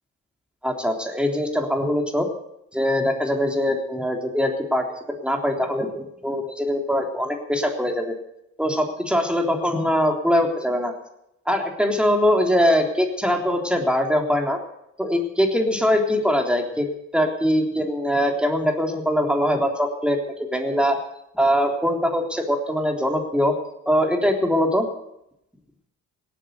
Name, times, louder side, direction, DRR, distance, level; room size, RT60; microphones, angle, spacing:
voice 1, 0.6-2.3 2.7-4.9 5.2-8.1 8.6-10.9 11.5-14.6 15.0-16.9 17.1-21.0 21.3-23.5 23.9-24.9, equal, 5° right, 3 dB, 3.5 m, -22 dB
18.0 x 8.7 x 8.2 m, 0.80 s
supercardioid pair, 60°, 37 cm